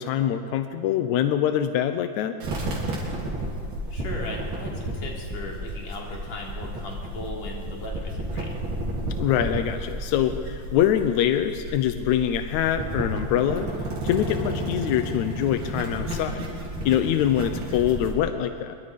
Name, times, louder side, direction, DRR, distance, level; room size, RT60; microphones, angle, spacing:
voice 1, 0.0-2.4 9.2-13.7 14.0-16.5 16.9-18.8, left 10 dB, 75° left, 8 dB, 1.8 m, -24 dB
sound 1, 2.4-18.2, right 1 dB, 70° right, 5.2 m, -32 dB
voice 2, 3.9-8.5, left 2 dB, 50° left, -2 dB, 4.5 m, -37 dB
26.0 x 22.5 x 5.2 m, 2.4 s
omnidirectional pair, 4.1 m